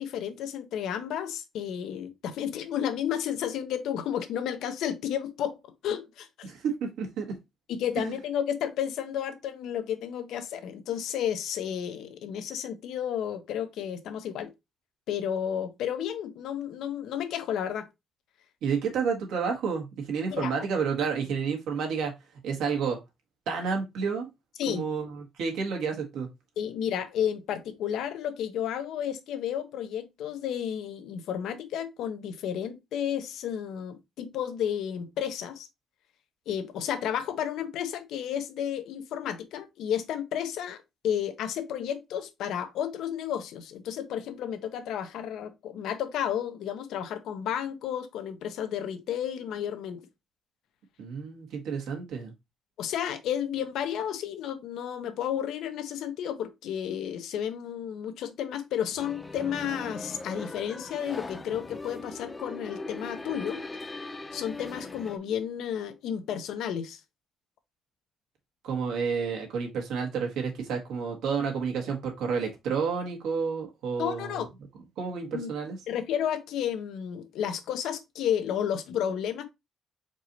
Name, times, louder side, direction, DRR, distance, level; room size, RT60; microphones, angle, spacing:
voice 1, 0.0-6.5 7.7-14.5 15.1-17.9 20.3-20.5 24.6-24.8 26.6-35.7 36.5-50.0 52.8-63.6 64.3-67.0 74.0-74.5 75.3-75.5 75.9-79.4, left 9 dB, 85° left, 0.7 m, -32 dB
voice 2, 6.4-7.4 8.0-8.1 18.6-22.1 22.4-23.0 23.5-24.3 24.7-26.3 51.0-52.3 68.6-74.5 75.0-75.8, right 6 dB, 90° right, 1.7 m, -30 dB
sound 1, 59.0-65.2, left 2 dB, 20° left, 0.7 m, -40 dB
4.6 x 4.0 x 2.9 m
cardioid pair, 90°, 0 cm